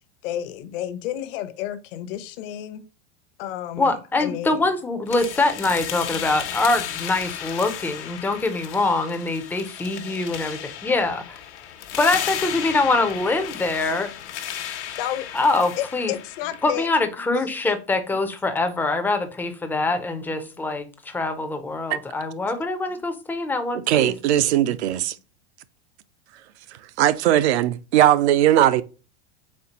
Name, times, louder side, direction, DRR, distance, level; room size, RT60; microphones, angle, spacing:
voice 1, 0.2-2.8 3.4-3.9 4.2-4.6 6.2-6.3 6.5-6.6 14.6-15.3 15.8-16.9, left 12 dB, 55° left, 0.7 m, -31 dB
voice 2, 3.8-11.4 12.0-14.1 15.3-16.1 16.6-24.1, left 3 dB, 5° left, 0.3 m, -24 dB
sound 1, 5.1-17.0, left 10 dB, 85° left, 0.9 m, -34 dB
voice 3, 23.9-25.2 26.7-28.8, right 12 dB, 80° right, 0.5 m, -19 dB
4.3 x 3.2 x 2.8 m
supercardioid pair, 130°, 33 cm